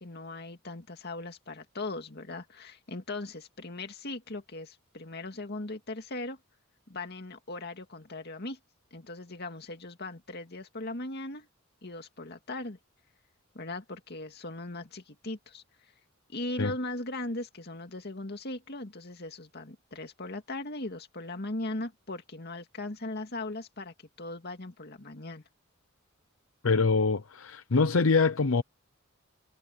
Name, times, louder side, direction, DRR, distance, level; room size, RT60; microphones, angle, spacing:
voice 1, 0.0-6.4 6.9-8.6 8.9-11.5 11.8-12.8 13.5-15.6 16.3-25.4, left 2 dB, 50° left, 2.3 m, -39 dB
voice 2, 26.6-28.6, left 4 dB, 70° left, 0.7 m, -24 dB
head